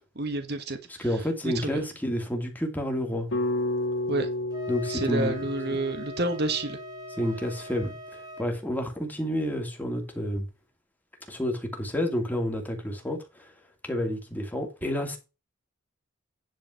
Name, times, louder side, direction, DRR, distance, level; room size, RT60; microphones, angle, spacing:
voice 1, 0.2-1.0 1.4-1.8 4.1-4.3 4.9-6.8, right 2 dB, 55° right, 1.6 m, -29 dB
voice 2, 1.0-3.3 4.7-5.4 5.7-5.8 7.2-10.4 11.3-13.5 13.8-15.2, equal, 10° left, 2.5 m, -30 dB
sound 1, 3.3-7.6, left 1 dB, 70° left, 2.8 m, -32 dB
Wind instrument woodwind instrument, 4.5-8.5, left 1 dB, 20° right, 2.1 m, -42 dB
10.5 x 4.8 x 5.8 m
head